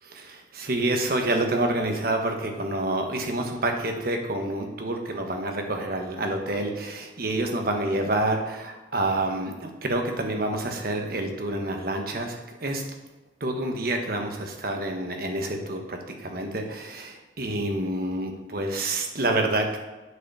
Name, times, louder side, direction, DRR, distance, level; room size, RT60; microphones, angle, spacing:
voice 1, 0.0-12.8 13.4-19.8, right 2 dB, 55° right, 3 dB, 1.3 m, -28 dB
8.3 x 5.0 x 6.9 m, 1.1 s
head